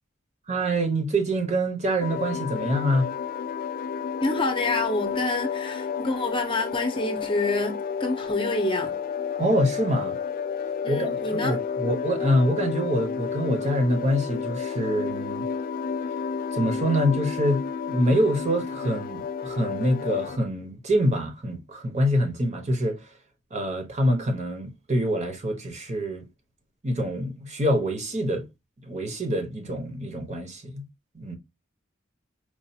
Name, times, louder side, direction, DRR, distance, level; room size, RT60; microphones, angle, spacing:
voice 1, 0.5-3.1 9.4-10.2 10.9-15.5 16.5-23.1 23.5-26.3 26.8-28.5 28.8-30.8 31.1-31.4, equal, 35° right, 1.0 m, -25 dB
sound 1, 2.0-20.4, left 6 dB, 45° left, 0.3 m, -31 dB
voice 2, 4.2-9.0 10.8-11.6, left 2 dB, 25° left, 0.7 m, -27 dB
4.7 x 2.5 x 2.7 m
head